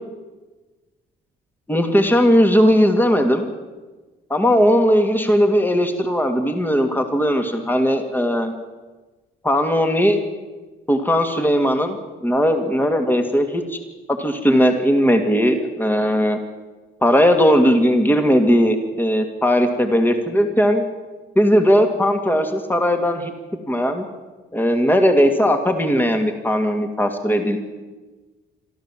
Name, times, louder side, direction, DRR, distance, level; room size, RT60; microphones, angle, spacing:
voice 1, 1.7-3.5 4.3-8.5 9.4-10.2 10.9-12.0 12.2-13.8 14.2-16.4 17.0-20.8 21.4-23.3 23.7-24.0 24.5-27.6, equal, 10° left, 5 dB, 2.4 m, -18 dB
26.0 x 13.5 x 7.5 m, 1.3 s
cardioid pair, 90°, 20 cm